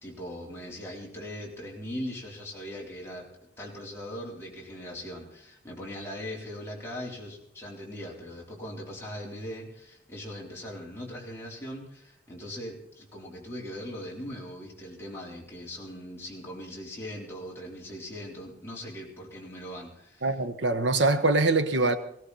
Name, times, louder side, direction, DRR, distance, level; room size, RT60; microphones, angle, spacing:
voice 1, 0.0-3.3 3.6-20.3, equal, 15° left, 3.8 m, -40 dB
voice 2, 20.2-21.9, right 2 dB, 80° right, 1.2 m, -23 dB
18.0 x 17.0 x 4.2 m
head